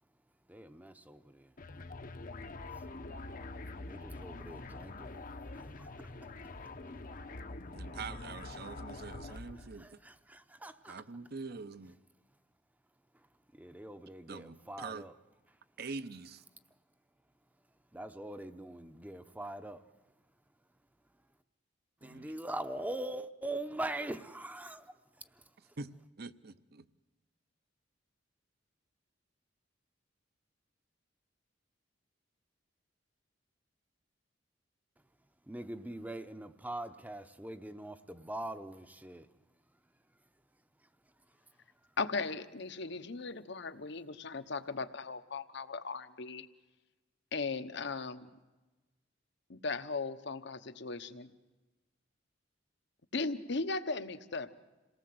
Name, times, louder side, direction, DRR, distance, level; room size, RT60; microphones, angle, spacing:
voice 1, 0.5-1.5 3.9-5.1 5.5-6.1 9.8-11.0 13.5-15.1 17.9-19.8 22.0-24.9 25.3-25.4 35.5-39.3, right 1 dB, 10° right, 0.7 m, -42 dB
sound 1, 1.6-9.8, left 2 dB, 45° left, 0.9 m, -45 dB
voice 2, 7.7-10.0 10.9-12.0 14.3-15.1 15.8-16.4 22.0-22.3 25.8-26.9, right 4 dB, 55° right, 0.8 m, -44 dB
voice 3, 42.0-46.5 47.3-48.3 49.5-51.3 53.1-54.5, left 4 dB, 65° left, 1.1 m, -37 dB
27.5 x 18.5 x 7.8 m
head